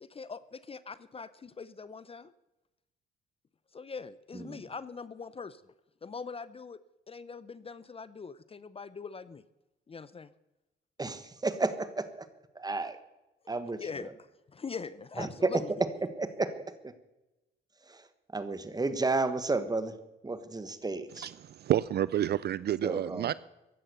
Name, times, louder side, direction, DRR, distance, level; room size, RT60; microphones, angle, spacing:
voice 1, 0.0-2.3 3.7-5.6 6.0-6.8 7.1-9.4 9.9-10.3 13.8-15.8, left 5 dB, 30° left, 0.6 m, -42 dB
voice 2, 11.0-12.3 12.5-13.0 13.5-13.8 15.2-15.6 16.0-16.5 16.8-16.9 17.9-18.0 18.3-19.9 20.2-21.3 22.8-23.3, right 3 dB, 20° right, 1.5 m, -32 dB
voice 3, 21.2-23.3, right 11 dB, 55° right, 0.4 m, -29 dB
15.5 x 11.0 x 6.9 m
cardioid pair, 90°, 20 cm